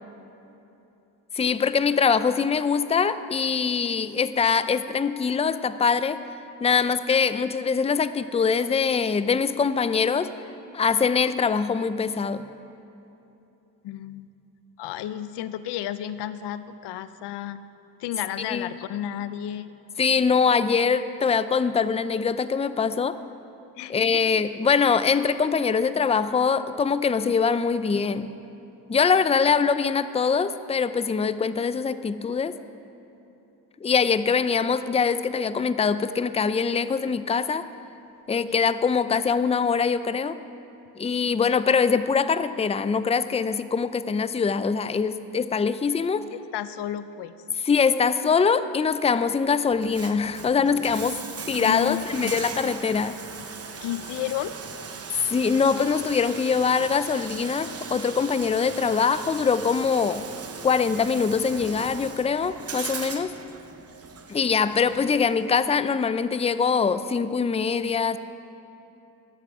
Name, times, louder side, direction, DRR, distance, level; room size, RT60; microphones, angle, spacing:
voice 1, 1.3-6.2 6.6-10.3 10.7-12.5 18.5-18.7 20.0-23.2 23.9-28.3 28.9-32.5 33.8-37.6 38.3-40.4 41.0-46.2 47.6-51.2 51.5-53.2 55.3-60.2 60.6-63.3 64.3-68.2, left 5 dB, 15° left, 13 dB, 0.5 m, -23 dB
voice 2, 13.8-14.3 14.8-17.7 18.0-19.7 23.8-24.2 38.5-38.6 46.3-47.3 51.6-52.4 53.8-54.5 64.3-64.7, left 11 dB, 85° left, 13 dB, 0.6 m, -32 dB
Bathtub (filling or washing), 49.7-65.6, right 5 dB, 35° right, 1.0 m, -39 dB
21.0 x 8.1 x 4.8 m, 2.9 s
cardioid pair, 75°, 40 cm